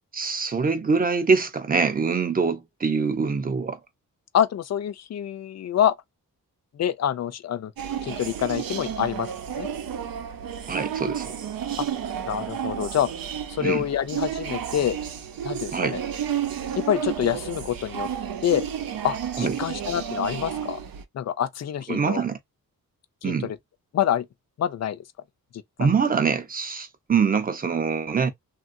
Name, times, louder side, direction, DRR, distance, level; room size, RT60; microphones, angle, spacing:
voice 1, 0.1-3.8 10.7-11.3 13.6-13.9 15.7-16.0 19.4-19.6 21.9-22.4 23.2-23.5 25.8-28.3, right 5 dB, 25° right, 0.6 m, -24 dB
voice 2, 4.3-5.9 6.7-7.7 8.0-9.3 9.6-9.7 11.8-11.9 12.3-13.1 13.5-15.0 15.4-16.0 16.7-18.1 18.4-18.7 19.0-20.8 21.1-22.2 23.2-23.6 23.9-24.3 24.6-25.0 25.5-25.6, left 10 dB, 50° left, 0.5 m, -26 dB
sound 1, 7.8-21.0, right 8 dB, 90° right, 0.7 m, -32 dB
3.3 x 2.2 x 2.5 m
wide cardioid pair, 170°, 34 cm